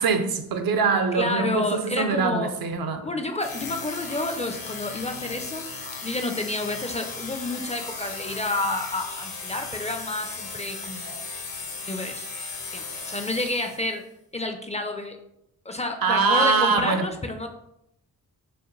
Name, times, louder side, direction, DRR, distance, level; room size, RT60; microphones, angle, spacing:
voice 1, 0.0-3.0 16.0-17.1, right 5 dB, 70° right, 0.6 m, -23 dB
voice 2, 1.1-2.5 3.0-5.7 6.0-11.2 11.9-12.3 12.7-14.0 14.3-15.2 15.7-17.5, left 2 dB, 20° left, 0.4 m, -29 dB
sound 1, 3.4-14.0, left 4 dB, 75° left, 1.0 m, -36 dB
5.0 x 2.1 x 3.0 m
cardioid pair, 65°, 37 cm